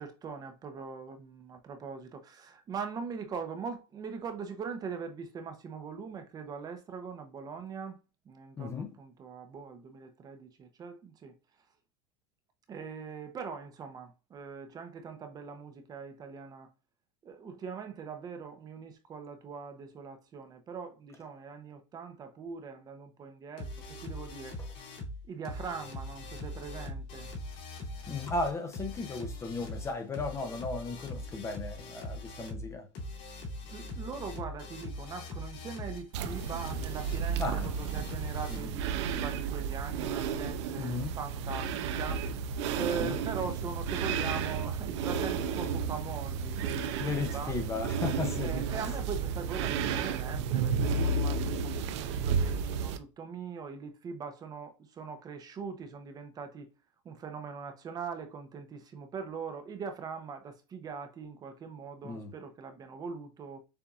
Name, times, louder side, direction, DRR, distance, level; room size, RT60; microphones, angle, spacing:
voice 1, 0.0-8.0 8.3-11.4 12.7-16.7 17.2-24.6 25.2-27.3 33.7-47.6 48.4-56.7 57.0-63.6, right 5 dB, 25° right, 0.7 m, -41 dB
voice 2, 8.6-8.9 28.1-32.9 37.4-37.7 38.5-38.7 40.8-41.1 42.8-43.1 47.0-48.6 62.0-62.3, left 3 dB, 20° left, 0.6 m, -35 dB
sound 1, 23.6-38.6, left 1 dB, 55° left, 2.3 m, -41 dB
sound 2, 36.1-53.0, right 6 dB, 75° right, 0.6 m, -32 dB
6.9 x 2.5 x 2.4 m
supercardioid pair, 140°, 15 cm